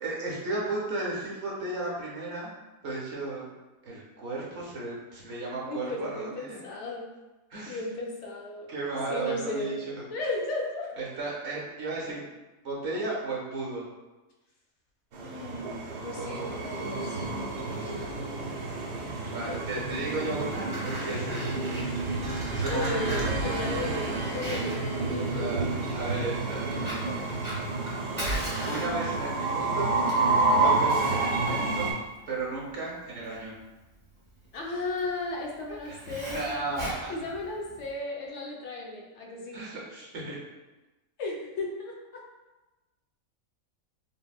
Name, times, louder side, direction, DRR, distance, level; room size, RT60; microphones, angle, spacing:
voice 1, 0.0-2.5 2.8-3.5 3.8-6.6 7.5-7.8 8.7-10.0 11.0-12.3 12.6-13.9 16.1-16.5 17.4-18.0 19.2-21.7 22.5-23.3 25.2-26.8 28.6-29.9 30.6-31.9 32.3-33.5 35.9-37.1 39.5-40.4, right 2 dB, 60° right, -4 dB, 0.9 m, -34 dB
voice 2, 5.7-7.1 7.6-9.8 10.1-10.9 15.2-17.2 17.7-18.1 19.2-19.8 22.7-25.6 31.5-31.6 34.5-36.8 37.1-39.6 41.2-42.2, left 2 dB, 65° left, -1 dB, 0.8 m, -35 dB
Train, 15.1-31.9, right 3 dB, 80° right, 1.1 m, -29 dB
Fire, 20.2-37.9, equal, 25° right, 0.7 m, -40 dB
3.8 x 2.1 x 2.3 m, 1.1 s
omnidirectional pair, 1.5 m